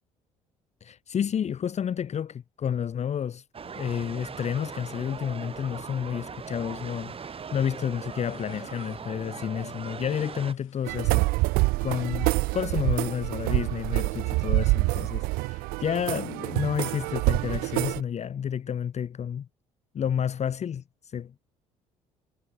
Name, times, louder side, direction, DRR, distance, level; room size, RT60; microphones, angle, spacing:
voice 1, 0.8-11.3 11.8-19.5 19.9-21.4, left 8 dB, 40° left, 1.1 m, -30 dB
sound 1, 3.5-10.5, right 6 dB, 35° right, 1.4 m, -40 dB
sound 2, 7.9-9.2 10.0-11.0 11.4-13.2, left 15 dB, 85° left, 4.3 m, -60 dB
sound 3, 10.9-18.0, right 24 dB, 65° right, 0.4 m, -26 dB
hypercardioid pair, 55°, 17 cm